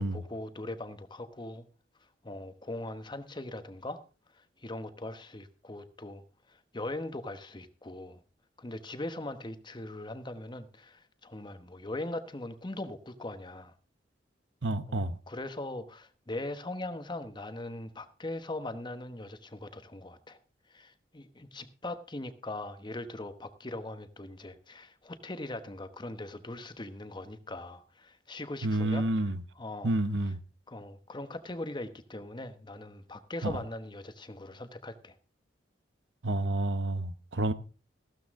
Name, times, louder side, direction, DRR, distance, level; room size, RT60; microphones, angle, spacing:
voice 1, 0.0-1.6 2.2-4.0 4.6-6.2 6.5-8.2 8.6-13.7 14.9-20.4 20.7-29.1 29.6-29.9 30.7-35.2, left 2 dB, 25° left, 1.0 m, -40 dB
voice 2, 14.6-15.2 28.6-29.4 29.8-30.4 33.4-33.5 36.2-37.5, right 2 dB, 75° right, 1.0 m, -29 dB
15.0 x 12.5 x 3.6 m
head